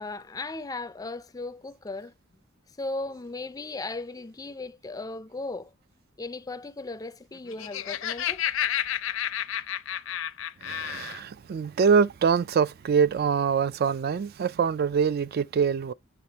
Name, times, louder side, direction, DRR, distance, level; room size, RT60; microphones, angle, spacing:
voice 1, 0.0-2.1 2.8-5.7 6.2-8.5, left 2 dB, 20° left, 0.4 m, -36 dB
Laughter, 7.4-11.2, left 10 dB, 75° left, 0.5 m, -31 dB
voice 2, 10.6-15.9, right 6 dB, 50° right, 0.3 m, -24 dB
7.7 x 3.4 x 4.1 m
head